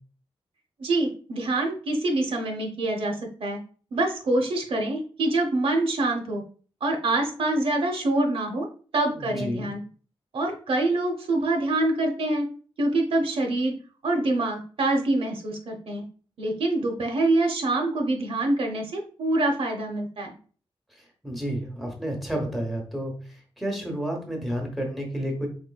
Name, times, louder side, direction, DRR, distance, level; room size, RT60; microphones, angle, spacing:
voice 1, 0.8-3.1 3.4-3.6 3.9-6.4 6.8-8.7 8.9-9.8 10.3-12.4 12.8-13.7 14.0-16.0 16.4-20.3, right 2 dB, 65° right, 2 dB, 0.8 m, -25 dB
voice 2, 9.1-9.7 21.2-25.5, equal, ahead, 1 dB, 1.1 m, -31 dB
4.4 x 3.7 x 2.3 m, 0.41 s
wide cardioid pair, 160°, 10 cm